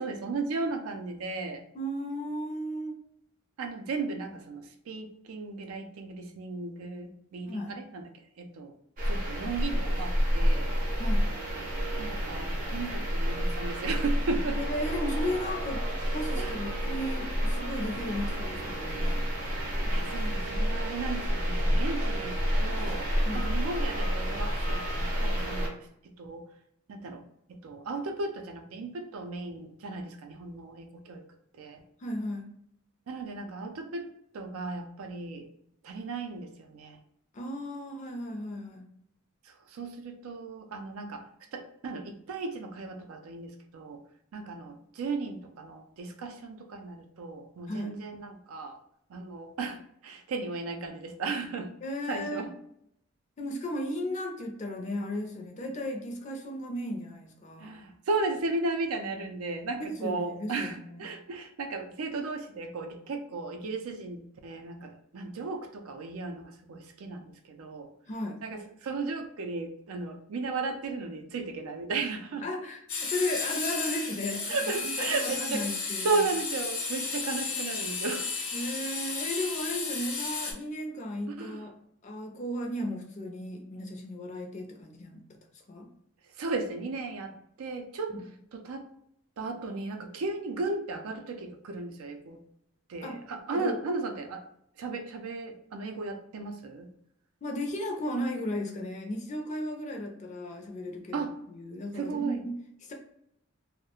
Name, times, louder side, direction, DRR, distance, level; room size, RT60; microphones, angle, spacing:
voice 1, 0.0-1.6 3.6-8.1 8.4-8.7 9.1-10.7 12.0-14.6 16.4-16.6 19.3-19.4 19.9-25.9 26.2-26.4 26.9-27.2 27.6-31.2 31.5-31.8 33.1-34.0 34.3-35.5 35.8-37.0 39.5-41.2 41.5-44.0 44.3-48.8 49.1-51.7 52.1-52.5 57.6-67.9 68.4-72.5 74.4-75.7 76.0-78.3 81.3-81.6 86.4-88.2 88.5-88.9 89.4-92.4 92.9-94.4 94.8-96.9 101.1-101.4 102.0-102.4, right 3 dB, 90° right, 6 dB, 0.4 m, -35 dB
voice 2, 1.7-3.0 7.5-7.7 11.0-11.3 14.5-15.8 16.1-19.2 23.3-23.4 32.0-32.5 37.3-38.9 47.7-47.9 51.8-52.5 53.4-57.7 59.8-61.1 68.1-68.4 72.4-76.2 78.5-81.7 82.0-85.4 85.7-85.9 88.1-88.2 93.0-93.2 93.5-93.8 97.4-102.9, left 1 dB, 35° left, 2 dB, 0.4 m, -35 dB
sound 1, 9.0-25.7, equal, 40° right, 0.5 m, -29 dB
sound 2, 72.9-80.5, left 4 dB, 75° left, 0.7 m, -33 dB
2.3 x 2.1 x 2.8 m, 0.72 s
head